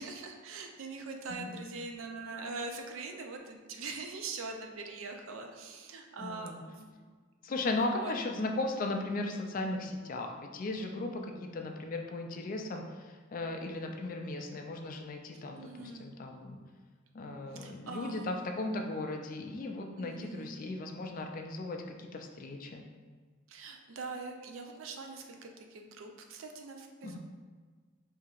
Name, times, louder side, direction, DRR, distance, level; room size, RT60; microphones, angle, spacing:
voice 1, 0.0-7.0 7.7-8.1 15.6-16.1 17.5-18.5 20.0-20.5 23.5-27.2, right 3 dB, 80° right, 3 dB, 0.4 m, -43 dB
voice 2, 6.2-6.6 7.4-16.6 17.1-22.8 27.0-27.2, left 2 dB, 40° left, 3 dB, 0.3 m, -37 dB
4.5 x 2.7 x 2.4 m, 1.5 s
head